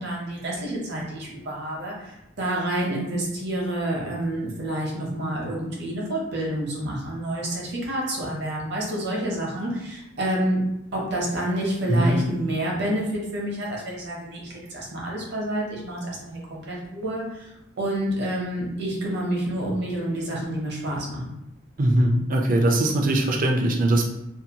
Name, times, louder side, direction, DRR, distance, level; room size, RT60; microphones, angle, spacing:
voice 1, 0.0-10.6 10.9-17.5 17.8-21.3, right 1 dB, 60° right, -2 dB, 0.8 m, -28 dB
voice 2, 21.8-24.0, right 1 dB, 45° right, 1 dB, 0.4 m, -21 dB
2.7 x 2.2 x 2.8 m, 0.85 s
head